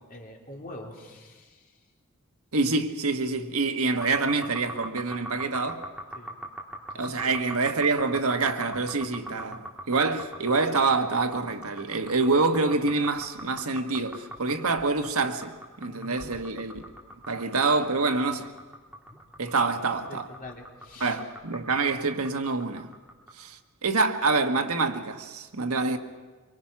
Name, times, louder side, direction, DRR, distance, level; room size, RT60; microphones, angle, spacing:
voice 1, 0.1-1.8 6.1-6.4 6.9-7.5 15.9-16.2 20.1-21.2, left 1 dB, 40° left, 3.3 m, -45 dB
voice 2, 2.5-5.8 6.9-16.8 17.3-18.5 19.4-20.3 21.0-22.9 23.4-26.0, right 3 dB, 85° right, 1.4 m, -26 dB
sound 1, 4.0-23.3, right 1 dB, 5° right, 2.7 m, -41 dB
24.5 x 23.5 x 5.9 m
head